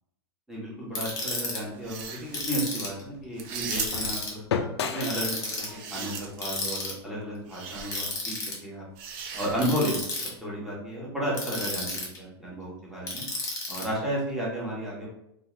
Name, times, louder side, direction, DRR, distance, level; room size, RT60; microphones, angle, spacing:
voice 1, 0.5-4.4 4.9-8.3 8.6-8.8 9.3-9.9 10.4-13.2 13.7-15.1, right 1 dB, ahead, -6 dB, 1.1 m, -32 dB
Ratchet pawl, 0.9-1.6 2.3-3.0 3.7-4.3 5.0-5.7 6.4-6.9 7.9-8.5 9.6-10.3 11.3-12.2 13.1-13.8, left 2 dB, 25° left, 1.2 m, -32 dB
sound 1, 1.7-7.8, left 6 dB, 85° left, 0.4 m, -37 dB
sound 2, 1.7-2.5 3.4-4.2 5.4-6.6 7.5-8.0 9.0-10.1, right 6 dB, 45° right, 0.5 m, -38 dB
2.5 x 2.4 x 3.3 m, 0.79 s
hypercardioid pair, 125°, 13 cm